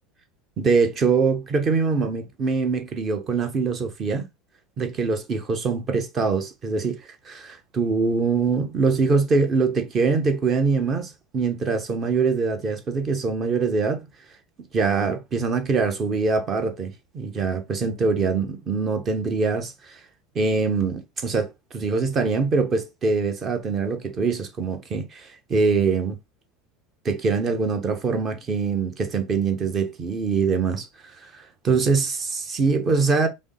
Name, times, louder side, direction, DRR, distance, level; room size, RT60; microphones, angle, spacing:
voice 1, 0.6-4.3 4.8-14.1 14.7-20.0 20.3-26.2 27.0-30.9 31.2-33.3, right 4 dB, 35° right, 0.9 m, -23 dB
5.2 x 2.0 x 3.2 m
figure-of-eight pair, 75°, 0 cm